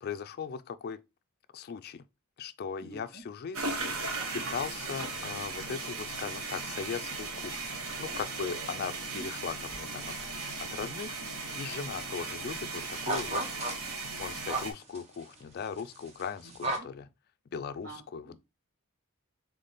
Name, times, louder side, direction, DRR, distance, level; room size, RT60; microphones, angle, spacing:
voice 1, 0.0-1.0 1.5-2.1 2.4-3.6 4.3-13.4 14.2-17.1 17.5-18.4, left 6 dB, 45° left, 0.3 m, -39 dB
voice 2, 2.8-3.2 9.1-9.3 12.6-12.7 13.0-13.5 16.8-16.9 17.8-18.4, right 2 dB, 55° right, 1.6 m, -48 dB
sound 1, 3.5-14.7, right 3 dB, 75° right, 1.0 m, -37 dB
sound 2, 9.9-10.6 10.8-11.6 11.9-12.0 12.3-16.8, right 2 dB, 30° right, 0.9 m, -36 dB
4.1 x 3.6 x 3.4 m
head